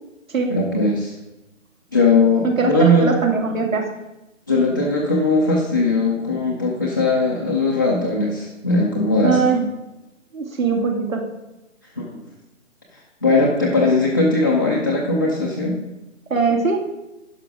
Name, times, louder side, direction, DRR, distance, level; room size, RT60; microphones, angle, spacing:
voice 1, 0.5-1.1 1.9-3.1 4.5-9.4 12.0-12.2 13.2-15.8, left 2 dB, 15° left, -5 dB, 0.5 m, -19 dB
voice 2, 3.0-3.9 9.2-9.7 10.3-11.3 16.3-16.8, right 5 dB, 85° right, 2 dB, 2.3 m, -20 dB
11.0 x 6.0 x 4.8 m, 0.98 s
hypercardioid pair, 155°, 39 cm